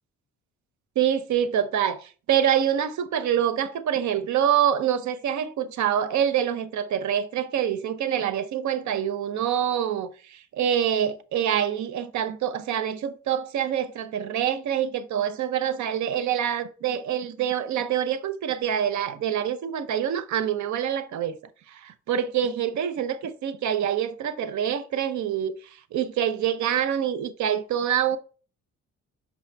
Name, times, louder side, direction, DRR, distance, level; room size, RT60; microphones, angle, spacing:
voice 1, 1.0-21.4 21.7-25.5 25.9-28.2, right 9 dB, 70° right, 0.8 m, -26 dB
5.8 x 5.6 x 3.4 m
cardioid pair, 90°, 30 cm